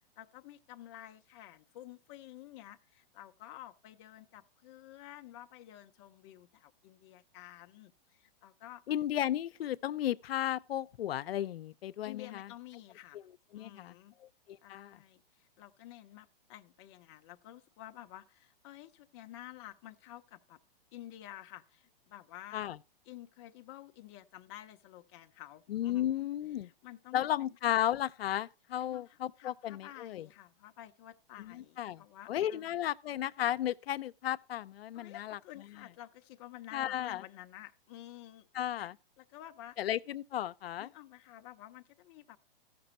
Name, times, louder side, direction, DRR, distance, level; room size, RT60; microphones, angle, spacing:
voice 1, 0.0-8.8 12.0-13.2 13.5-14.1 14.6-20.6 20.9-22.6 23.0-27.6 28.8-32.7 34.9-38.5 38.8-38.9 39.2-39.8 40.8-42.4, left 14 dB, 30° left, 0.6 m, -51 dB
voice 2, 8.9-12.5 13.5-13.9 14.2-15.0 22.5-22.8 25.7-26.7 27.1-30.3 31.4-32.0 32.3-35.4 36.7-37.2 38.5-39.0 39.8-40.9, left 12 dB, 85° left, 0.5 m, -34 dB
14.5 x 6.0 x 4.1 m
hypercardioid pair, 150°, 29 cm